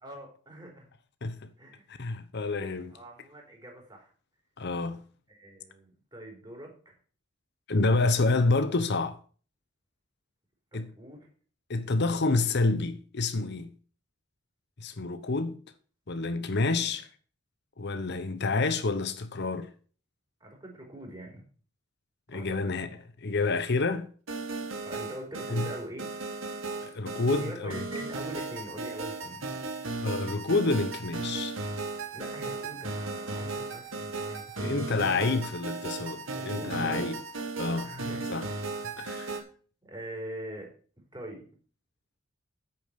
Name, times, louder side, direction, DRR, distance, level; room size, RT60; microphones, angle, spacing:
voice 1, 0.0-0.9 1.6-1.8 2.9-4.1 5.3-6.9 10.7-11.3 16.6-16.9 20.4-21.5 22.3-22.6 24.8-26.1 27.4-29.4 32.1-34.6 35.0-35.4 36.3-37.0 37.8-38.5 39.0-39.2 39.8-40.7 41.1-41.4, right 1 dB, 20° right, 4.5 m, -43 dB
voice 2, 1.9-3.0 4.6-5.0 7.7-9.2 10.7-10.9 11.7-13.7 14.8-15.6 16.1-17.1 17.8-19.7 22.3-22.9 23.2-24.1 25.5-25.7 26.8-27.9 30.0-31.6 34.6-37.2 37.6-37.9 38.3-38.5 38.8-39.4, left 3 dB, 55° left, 0.9 m, -28 dB
sound 1, 24.3-39.4, right 3 dB, 75° right, 2.3 m, -36 dB
9.8 x 8.8 x 5.8 m
head